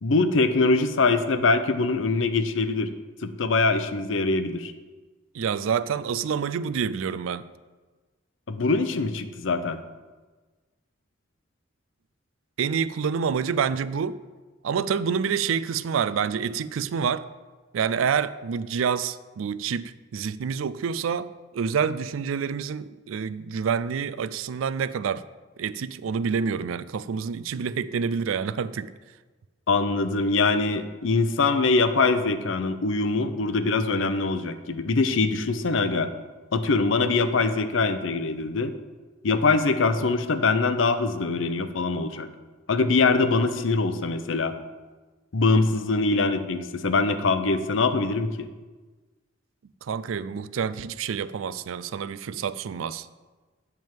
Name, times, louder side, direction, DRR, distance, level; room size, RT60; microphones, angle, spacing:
voice 1, 0.0-2.9 3.2-4.7 8.5-9.8 29.7-36.1 36.5-38.8 39.2-42.3 42.7-44.5 45.3-48.5, left 3 dB, 75° left, 10 dB, 0.6 m, -23 dB
voice 2, 5.3-7.5 12.6-14.2 14.6-17.2 17.7-25.2 25.6-28.9 49.8-53.1, right 6 dB, 90° right, 16 dB, 0.4 m, -27 dB
10.5 x 3.6 x 7.3 m, 1.3 s
head